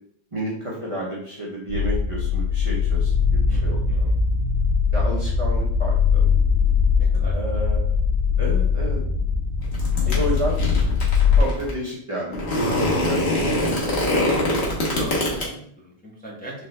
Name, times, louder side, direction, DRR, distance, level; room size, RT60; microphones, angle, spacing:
voice 1, 0.3-4.1 4.9-6.3 7.3-7.9 8.4-9.0 9.9-10.6 11.3-12.8 13.1-13.5, right 1 dB, 35° right, -5 dB, 0.9 m, -31 dB
sound 1, 1.7-11.4, left 5 dB, 85° right, 1.3 m, -21 dB
voice 2, 3.5-4.1 7.0-7.6 10.0-10.4 12.7-12.9 14.1-16.7, equal, 10° left, -5 dB, 1.0 m, -37 dB
sound 2, 9.6-11.7 12.3-15.4, left 1 dB, 85° left, 1.5 m, -24 dB
4.1 x 3.3 x 3.2 m, 0.65 s
omnidirectional pair, 1.1 m